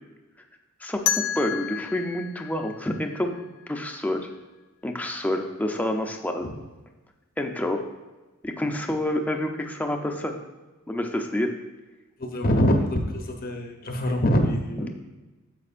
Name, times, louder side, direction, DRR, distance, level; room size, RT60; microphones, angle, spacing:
voice 1, 0.8-3.4 3.7-4.3 4.8-6.5 7.4-7.8 8.4-10.4 10.9-11.5 14.8-14.9, left 1 dB, 5° left, 3 dB, 0.6 m, -28 dB
sound 1, 1.1-3.9, left 10 dB, 75° left, 0.5 m, -31 dB
voice 2, 12.2-15.0, equal, 45° left, 3 dB, 0.9 m, -24 dB
9.6 x 7.6 x 2.5 m, 1.2 s
head